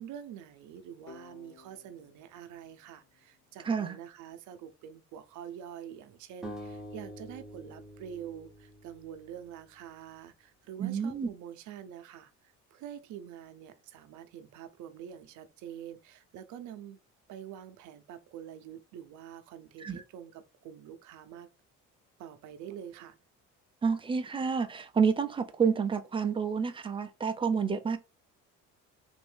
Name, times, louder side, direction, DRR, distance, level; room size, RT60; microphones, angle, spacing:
voice 1, 0.0-17.0 17.3-21.5 22.2-23.2, right 9 dB, 70° right, 0.7 m, -46 dB
sound 1, 1.1-3.9, left 5 dB, 90° left, 1.0 m, -57 dB
voice 2, 3.6-4.0 10.8-11.3 19.8-20.0 23.8-28.0, right 6 dB, 15° right, 0.4 m, -29 dB
sound 2, 6.4-9.6, equal, ahead, 0.9 m, -46 dB
3.5 x 2.6 x 3.3 m
cardioid pair, 135°, 31 cm